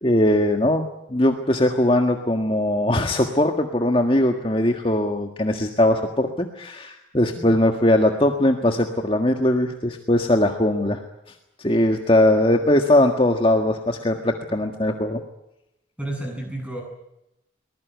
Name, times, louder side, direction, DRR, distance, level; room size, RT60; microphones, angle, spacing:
voice 1, 0.0-11.0 11.6-15.2, left 1 dB, 30° left, 4 dB, 1.7 m, -20 dB
voice 2, 16.0-16.8, right 1 dB, 5° right, 2 dB, 7.8 m, -31 dB
23.5 x 20.0 x 9.4 m, 0.87 s
head